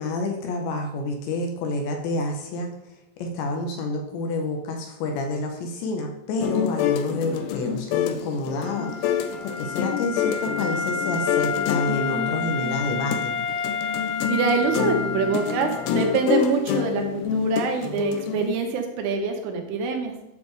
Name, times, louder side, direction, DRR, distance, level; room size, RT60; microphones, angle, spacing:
voice 1, 0.0-2.7 3.2-13.3, left 2 dB, 75° left, 2 dB, 3.1 m, -29 dB
sound 1, 6.4-18.5, left 9 dB, 90° left, 2.3 m, -27 dB
Wind instrument woodwind instrument, 8.6-16.4, left 5 dB, 65° right, 1.9 m, -30 dB
voice 2, 14.3-20.1, right 5 dB, 80° right, 3 dB, 3.6 m, -25 dB
11.0 x 6.9 x 3.3 m, 0.90 s
omnidirectional pair, 5.6 m